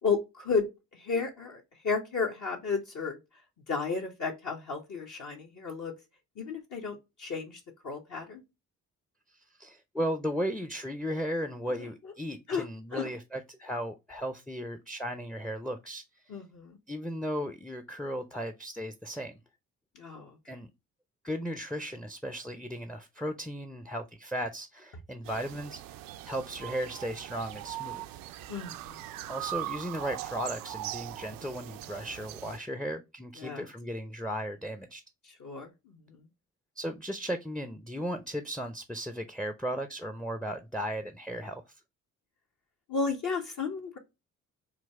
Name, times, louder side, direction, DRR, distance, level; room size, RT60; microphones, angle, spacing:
voice 1, 0.0-0.7 0.9-3.2 3.7-5.9 6.4-8.4 12.0-12.1 12.5-12.7 12.9-13.1 16.3-16.8 19.9-20.3 28.5-29.0 33.4-33.6 35.2-36.2 42.9-44.0, left 5 dB, 45° left, 1.1 m, -33 dB
voice 2, 9.6-16.0 16.9-19.4 20.5-20.7 21.2-28.1 29.3-35.0 36.8-41.6, equal, ahead, 0.6 m, -36 dB
sound 1, 25.2-32.6, right 15 dB, 55° right, 0.5 m, -40 dB
3.9 x 2.3 x 4.6 m
figure-of-eight pair, 40°, 41 cm